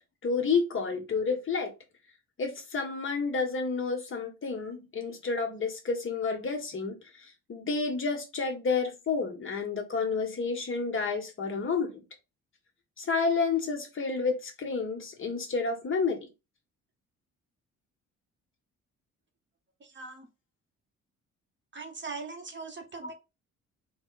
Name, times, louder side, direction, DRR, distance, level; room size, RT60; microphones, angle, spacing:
voice 1, 0.2-1.7 2.4-12.0 13.0-16.2 23.0-23.1, left 4 dB, 40° left, 1.3 m, -30 dB
voice 2, 19.8-20.3 21.7-23.1, right 4 dB, 40° right, 0.9 m, -40 dB
3.8 x 2.3 x 3.9 m
cardioid pair, 90°, 30 cm